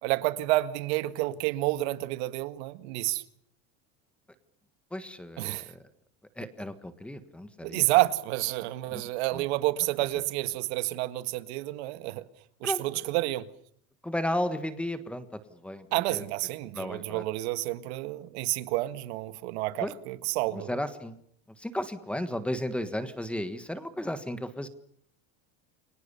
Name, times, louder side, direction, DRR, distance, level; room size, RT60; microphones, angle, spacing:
voice 1, 0.0-3.2 5.4-5.7 7.6-12.2 12.6-13.5 15.9-20.7, right 18 dB, 80° right, 1.8 m, -29 dB
voice 2, 4.9-5.8 6.4-7.8 8.9-9.0 9.3-9.4 12.6-12.8 14.0-16.2 16.7-17.2 19.8-19.9 20.5-21.2 21.6-24.7, left 1 dB, 5° left, 1.5 m, -34 dB
29.5 x 24.5 x 6.9 m
cardioid pair, 180°, 32 cm